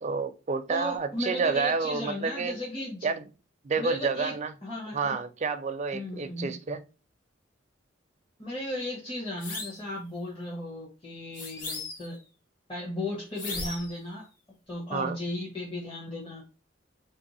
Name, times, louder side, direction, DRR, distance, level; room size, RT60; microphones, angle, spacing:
voice 1, 0.0-2.6 3.0-3.2 3.6-4.5 4.9-6.8 14.9-15.2, right 4 dB, 35° right, 10 dB, 0.4 m, -29 dB
voice 2, 0.7-3.1 3.8-4.4 4.6-5.2 5.9-6.6 8.4-12.2 12.7-14.3 14.7-16.4, left 1 dB, 30° left, -4 dB, 1.0 m, -35 dB
sound 1, 9.4-9.9 11.3-12.2 13.4-14.0, left 3 dB, 45° left, 0.9 m, -37 dB
3.1 x 2.6 x 4.0 m, 0.32 s
head